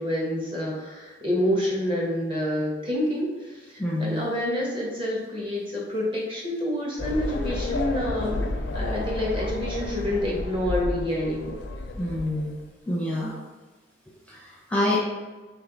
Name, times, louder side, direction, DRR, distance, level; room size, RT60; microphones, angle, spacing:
voice 1, 0.0-8.5 8.7-11.6, left 1 dB, 30° right, -3 dB, 0.9 m, -28 dB
voice 2, 3.8-4.2 12.0-12.6 12.9-13.3 14.3-15.0, left 1 dB, 10° left, -5 dB, 0.5 m, -27 dB
sound 1, 7.0-12.6, left 2 dB, 85° left, 0.5 m, -31 dB
3.2 x 2.8 x 3.8 m, 1.2 s
head